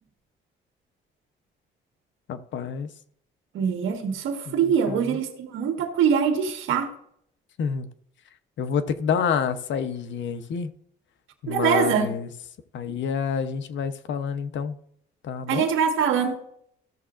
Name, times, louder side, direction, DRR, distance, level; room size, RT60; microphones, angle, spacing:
voice 1, 2.3-2.9 4.5-4.6 4.9-5.2 7.6-7.9 8.6-10.7 11.4-12.3 12.7-14.8 15.2-15.7, left 6 dB, 70° left, 0.9 m, -28 dB
voice 2, 3.5-6.9 11.5-12.1 15.5-16.4, right 7 dB, 85° right, 1.6 m, -23 dB
15.0 x 6.9 x 2.5 m
cardioid pair, 90°, 20 cm